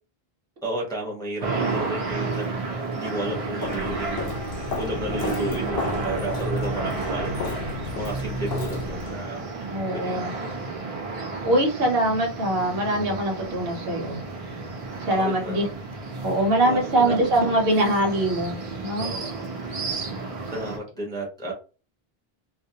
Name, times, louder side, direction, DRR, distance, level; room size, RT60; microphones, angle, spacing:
voice 1, 0.6-4.3 4.7-7.6 8.0-9.4 9.9-10.3 15.1-15.7 16.6-17.7 19.0-19.8 20.5-21.5, right 1 dB, 5° left, -2 dB, 0.7 m, -33 dB
sound 1, 1.4-20.8, right 3 dB, 50° right, 0.4 m, -31 dB
Walk footsteps, 3.6-9.2, left 5 dB, 70° left, 0.8 m, -34 dB
voice 2, 9.7-10.3 11.2-14.2 15.1-15.7 16.2-19.1, right 1 dB, 70° right, 1 dB, 1.0 m, -23 dB
2.4 x 2.0 x 2.7 m, 0.33 s
omnidirectional pair, 1.0 m